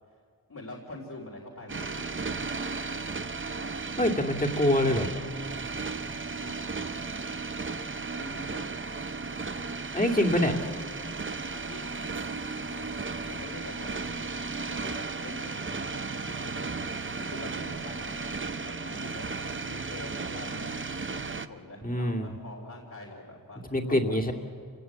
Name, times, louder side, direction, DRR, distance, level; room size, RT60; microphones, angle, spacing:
voice 1, 0.5-2.6 6.4-6.7 8.2-8.7 11.5-12.0 13.1-16.7 17.0-19.3 19.7-20.8 21.1-24.3, left 1 dB, 55° left, -3 dB, 3.7 m, -45 dB
sound 1, 1.7-21.5, right 4 dB, 35° right, 0.9 m, -35 dB
voice 2, 4.0-5.1 9.9-10.5 21.8-22.3 23.7-24.3, left 1 dB, 25° left, 1 dB, 2.5 m, -25 dB
29.0 x 18.0 x 8.4 m, 2.2 s
wide cardioid pair, 55°, 35 cm